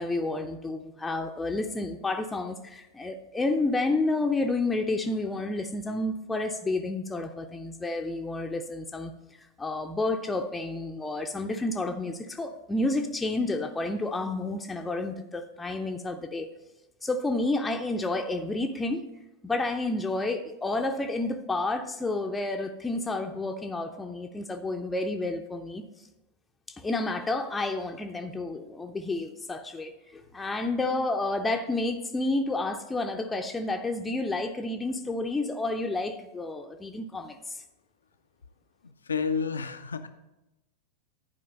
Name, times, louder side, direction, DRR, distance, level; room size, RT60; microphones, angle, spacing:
voice 1, 0.0-9.2 9.6-16.5 17.0-19.0 19.4-25.8 26.7-37.6, left 2 dB, 10° left, 4 dB, 0.5 m, -30 dB
voice 2, 38.8-40.1, left 6 dB, 70° left, 10 dB, 0.4 m, -30 dB
10.5 x 5.0 x 5.3 m, 0.99 s
figure-of-eight pair, 90°, 0 cm